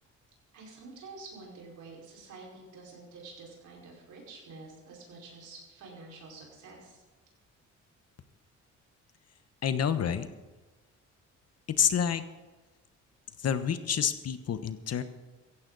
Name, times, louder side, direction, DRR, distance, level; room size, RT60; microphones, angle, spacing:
voice 1, 0.5-7.0, right 3 dB, 75° right, -2 dB, 5.3 m, -48 dB
voice 2, 9.6-10.3 11.8-12.2 13.4-15.0, left 8 dB, 55° left, 11 dB, 1.2 m, -28 dB
15.5 x 15.5 x 4.2 m, 1.2 s
cardioid pair, 90°, 30 cm